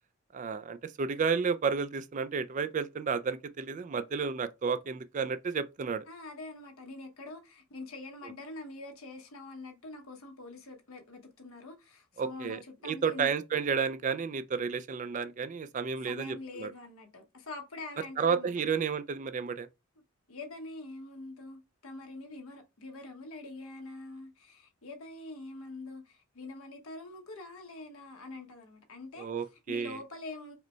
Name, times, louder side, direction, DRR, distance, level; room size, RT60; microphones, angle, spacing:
voice 1, 0.3-6.0 12.2-16.7 18.2-19.7 29.2-30.0, right 5 dB, 35° right, 0.3 m, -32 dB
voice 2, 6.1-13.3 16.1-18.5 20.3-29.3 29.7-30.6, left 2 dB, 75° left, 1.1 m, -45 dB
4.9 x 2.2 x 4.4 m
head